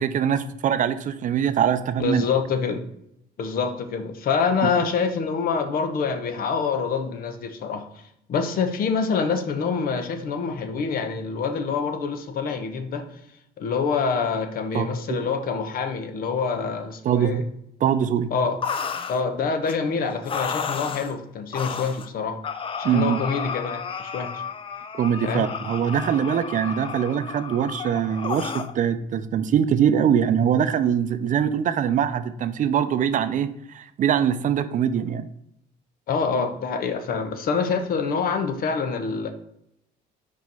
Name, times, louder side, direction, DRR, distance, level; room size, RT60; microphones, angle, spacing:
voice 1, 0.0-2.3 4.6-4.7 14.7-15.2 17.0-17.5 17.8-18.3 22.8-23.2 24.9-35.3, right 8 dB, 50° right, 11 dB, 0.5 m, -23 dB
voice 2, 2.0-2.8 3.4-8.0 8.3-13.1 13.6-17.4 18.3-18.6 19.1-22.4 22.8-24.4 25.2-25.5 36.1-39.3, left 5 dB, 60° left, 8 dB, 1.0 m, -26 dB
sound 1, 18.6-19.2 19.6-19.8 20.2-21.1 21.5-22.1 22.4-28.7, left 6 dB, 30° left, 0.5 m, -32 dB
5.0 x 4.6 x 5.3 m, 0.76 s
cardioid pair, 110°, 17 cm